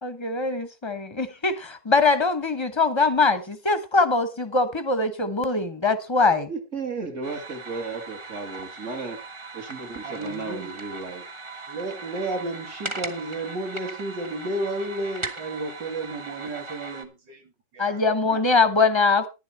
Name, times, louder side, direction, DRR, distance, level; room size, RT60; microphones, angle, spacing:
voice 1, 0.0-6.5 17.8-19.3, left 3 dB, 20° left, 0.9 m, -22 dB
voice 2, 6.5-9.2 9.5-11.2, right 4 dB, 40° right, 2.3 m, -34 dB
sound 1, 7.2-17.1, right 3 dB, 20° right, 1.1 m, -38 dB
voice 3, 10.0-10.7 11.7-17.4 17.7-18.4, right 2 dB, 80° right, 3.3 m, -32 dB
11.0 x 10.5 x 4.2 m
omnidirectional pair, 1.9 m